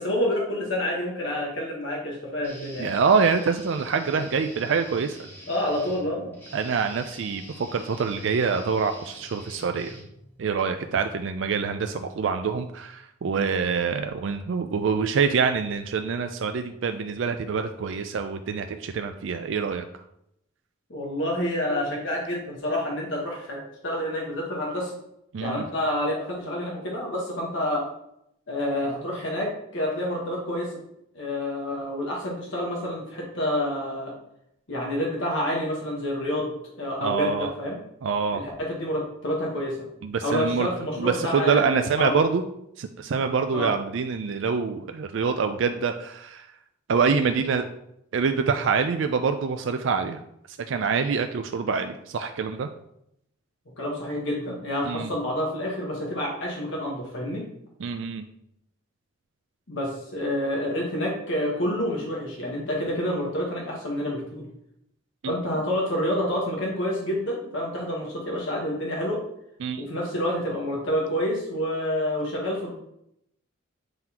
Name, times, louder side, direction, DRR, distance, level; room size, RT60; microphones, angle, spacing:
voice 1, 0.0-2.9 5.5-6.3 20.9-24.9 25.4-27.9 28.5-30.7 31.1-34.1 34.7-37.8 38.3-39.8 40.2-42.2 43.5-43.7 53.8-57.4 59.7-64.4 65.3-69.2 69.8-72.7, left 1 dB, 65° left, -2 dB, 1.3 m, -28 dB
Guitar, 2.4-10.5, equal, 10° left, 1.4 m, -46 dB
voice 2, 2.8-5.2 6.5-9.9 10.4-19.8 25.3-25.6 37.0-37.5 38.0-38.4 40.0-40.7 41.0-42.4 42.8-46.4 46.9-47.7 48.1-50.2 50.7-52.7 54.8-55.1 57.8-58.2 65.2-65.3 69.6-69.9, right 5 dB, 65° right, 7 dB, 0.4 m, -25 dB
8.9 x 3.9 x 2.9 m, 0.78 s
head